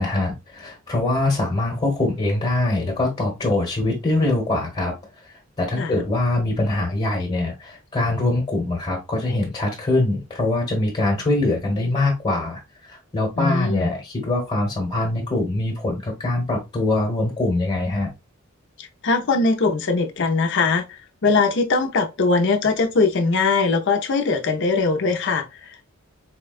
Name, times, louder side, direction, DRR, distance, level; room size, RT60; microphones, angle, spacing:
voice 1, 0.0-4.9 5.6-18.1, left 2 dB, 30° left, 1.1 m, -23 dB
voice 2, 13.4-13.9 18.8-25.9, left 4 dB, 60° left, 0.6 m, -21 dB
4.3 x 2.2 x 2.4 m
head